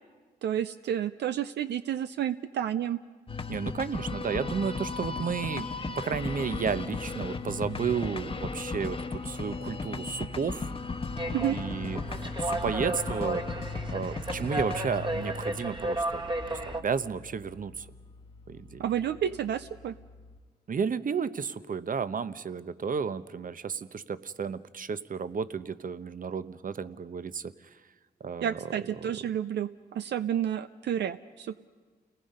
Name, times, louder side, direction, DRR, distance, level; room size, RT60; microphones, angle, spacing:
voice 1, 0.4-3.0 11.3-11.6 18.8-19.9 28.4-31.6, right 10 dB, 80° right, 11 dB, 0.5 m, -30 dB
sound 1, 3.3-20.4, left 4 dB, 30° left, 1.2 m, -37 dB
voice 2, 3.5-10.7 11.5-13.4 13.9-17.9 18.5-18.8 20.7-27.5 28.2-28.6 29.0-29.1, right 6 dB, 50° right, 14 dB, 0.8 m, -33 dB
sound 2, 11.2-16.8, right 1 dB, 30° right, 1.3 m, -33 dB
29.0 x 19.0 x 5.4 m, 1.4 s
cardioid pair, 60°, 18 cm